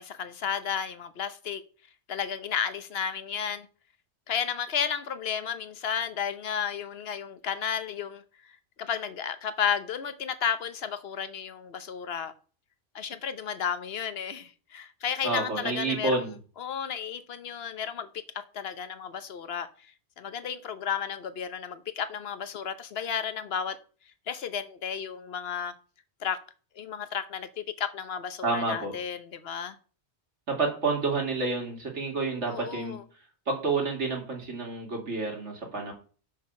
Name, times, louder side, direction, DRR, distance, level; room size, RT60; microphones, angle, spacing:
voice 1, 0.0-1.6 2.1-3.7 4.3-8.5 8.8-12.3 12.9-16.1 16.6-18.1 18.5-19.7 20.2-23.8 24.3-25.7 26.2-26.4 26.8-29.8 32.5-33.0, left 7 dB, 65° left, 1.1 m, -33 dB
voice 2, 15.2-16.4 28.4-29.0 30.5-33.0 33.5-35.9, right 3 dB, 85° right, 2.6 m, -29 dB
6.4 x 5.6 x 5.3 m
omnidirectional pair, 1.2 m